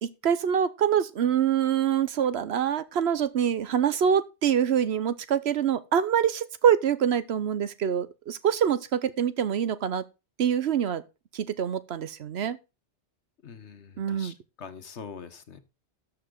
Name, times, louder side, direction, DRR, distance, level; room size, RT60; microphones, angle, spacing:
voice 1, 0.0-10.0 10.4-11.0 11.3-12.6 14.0-14.3, right 8 dB, 70° right, 1.0 m, -25 dB
voice 2, 13.4-15.6, left 6 dB, 75° left, 1.5 m, -44 dB
13.0 x 5.8 x 3.8 m
omnidirectional pair, 1.2 m